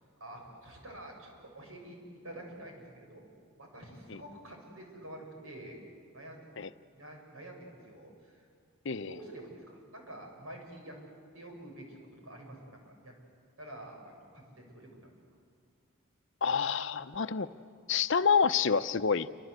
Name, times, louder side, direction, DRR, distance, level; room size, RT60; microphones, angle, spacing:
voice 1, 0.2-2.0 2.2-3.2 3.5-5.8 6.1-6.5 6.9-8.4 9.1-11.0 11.3-13.1 13.6-15.1, right 1 dB, 80° right, 1 dB, 6.8 m, -48 dB
voice 2, 8.8-9.2 16.4-17.5 17.9-19.3, left 6 dB, 60° left, 12 dB, 0.7 m, -28 dB
28.5 x 25.5 x 8.1 m, 2.2 s
head